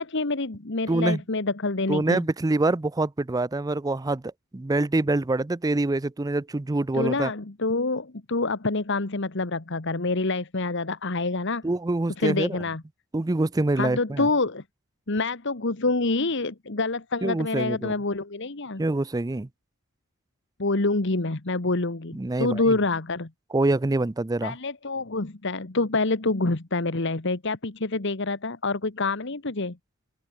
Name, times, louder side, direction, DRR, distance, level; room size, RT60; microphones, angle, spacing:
voice 1, 0.0-2.2 6.9-11.6 12.2-12.8 13.8-14.6 15.1-18.8 20.6-23.3 24.4-29.8, left 3 dB, 55° left, 1.4 m, -27 dB
voice 2, 0.9-1.2 1.9-4.2 4.5-7.3 11.6-12.6 13.1-14.3 17.2-17.9 18.8-19.5 22.1-22.8 23.5-24.6, right 2 dB, 15° right, 0.4 m, -25 dB
open air
head